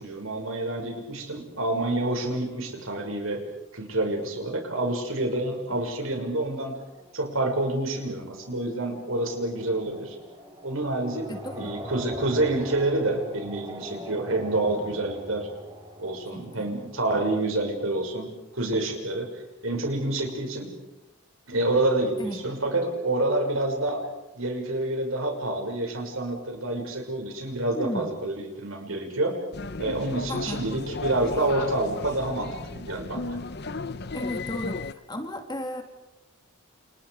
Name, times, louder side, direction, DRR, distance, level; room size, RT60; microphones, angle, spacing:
voice 1, 0.0-3.4 3.7-6.8 7.1-10.2 10.6-11.3 11.6-15.5 16.0-20.8 21.5-24.1 24.3-29.4 29.8-33.4, right 2 dB, 75° right, 3 dB, 6.6 m, -28 dB
sound 1, 6.9-17.8, equal, 20° right, 4.9 m, -43 dB
voice 2, 11.3-11.8 16.3-16.7 22.2-22.4 27.8-28.1 30.3-30.6 34.1-35.8, left 1 dB, 20° left, 4 dB, 2.9 m, -34 dB
sound 2, 29.5-34.9, left 3 dB, 50° left, 0.9 m, -35 dB
30.0 x 30.0 x 5.1 m, 0.96 s
head